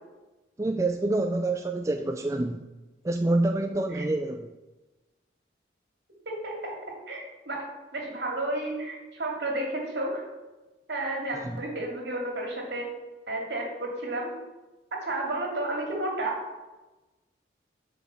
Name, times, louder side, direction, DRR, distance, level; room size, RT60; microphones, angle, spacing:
voice 1, 0.6-2.6 3.0-4.5 11.4-11.6, right 2 dB, 15° right, 5 dB, 0.3 m, -27 dB
voice 2, 6.3-6.8 7.1-10.2 10.9-12.9 13.3-14.3 14.9-16.4, right 1 dB, 65° right, 0 dB, 2.5 m, -32 dB
8.9 x 5.1 x 6.9 m, 1.1 s
head